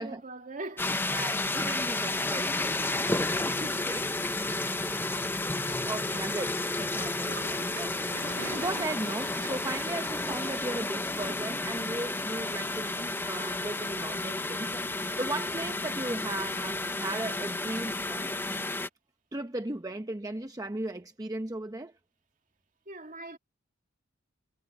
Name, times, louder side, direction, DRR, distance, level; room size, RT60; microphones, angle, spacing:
voice 1, 0.0-1.2 3.4-3.9 4.4-5.0 22.9-23.4, right 2 dB, 45° right, 2.3 m, -42 dB
sound 1, 0.8-18.9, left 2 dB, 10° left, 0.7 m, -32 dB
voice 2, 1.1-5.2 5.7-8.0 8.4-18.3 19.3-22.0, right 2 dB, 20° right, 0.8 m, -37 dB
Toilet flush, 7.3-12.3, right 4 dB, 75° right, 1.9 m, -46 dB
head